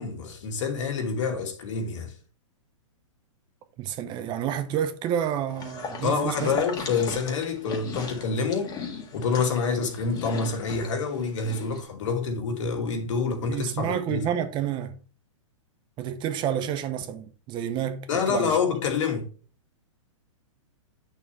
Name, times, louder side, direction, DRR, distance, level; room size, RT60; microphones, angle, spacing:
voice 1, 0.0-2.1 6.0-8.7 9.1-14.3 18.1-19.2, left 5 dB, 65° left, 2.5 m, -27 dB
voice 2, 3.8-6.6 13.5-14.9 16.0-18.6, right 9 dB, 30° right, 0.8 m, -29 dB
sound 1, 5.5-11.8, left 5 dB, 20° left, 1.9 m, -38 dB
8.6 x 6.7 x 3.3 m
hypercardioid pair, 135°, 17 cm